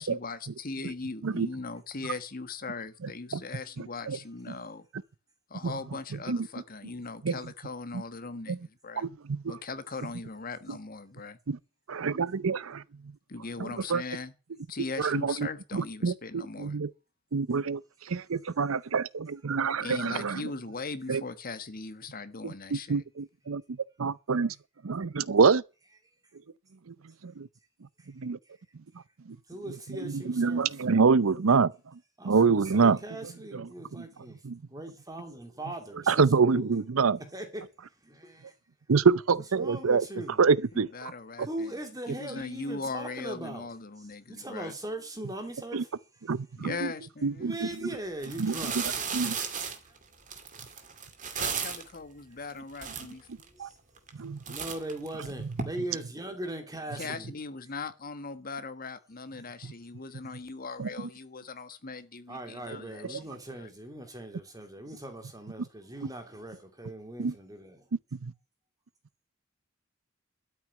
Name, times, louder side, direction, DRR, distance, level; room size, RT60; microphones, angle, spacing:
voice 1, 0.0-4.9 5.5-9.1 9.4-11.4 13.3-14.3 14.7-16.8 19.8-23.0 40.7-41.7 42.1-44.7 46.5-47.5 51.4-53.3 56.9-63.7, left 3 dB, 45° left, 1.4 m, -39 dB
voice 2, 3.8-4.2 5.6-5.7 6.3-6.5 7.2-7.3 7.9-8.0 8.5-8.6 9.0-9.5 11.5-11.6 11.9-12.8 13.6-14.0 15.0-15.5 15.7-16.9 17.3-17.8 18.1-20.4 21.1-21.2 22.4-24.5 24.8-25.6 26.9-27.0 27.2-27.5 28.2-28.4 30.0-31.7 32.2-33.0 33.5-34.0 34.4-34.6 36.1-37.2 38.9-40.0 40.4-40.9 41.4-41.5 45.7-45.8 46.3-46.7 47.2-47.7 48.4-48.8 49.1-49.4 53.6-53.7 54.2-54.4 60.8-60.9 67.2-67.3 68.1-68.3, right 5 dB, 85° right, 0.6 m, -26 dB
voice 3, 29.5-30.8 32.2-34.4 34.7-36.3 36.5-36.8 37.3-37.6 38.0-38.5 39.5-40.4 41.4-43.7 44.3-46.0 47.4-49.2 49.6-50.0 52.5-53.0 53.3-53.7 54.5-57.3 62.3-67.9, right 1 dB, 20° right, 2.6 m, -40 dB
sound 1, 47.6-47.8 48.2-52.0 52.5-52.6 52.8-53.5 54.0-54.2 54.5-55.6, right 6 dB, 40° right, 2.3 m, -35 dB
12.5 x 6.2 x 9.7 m
head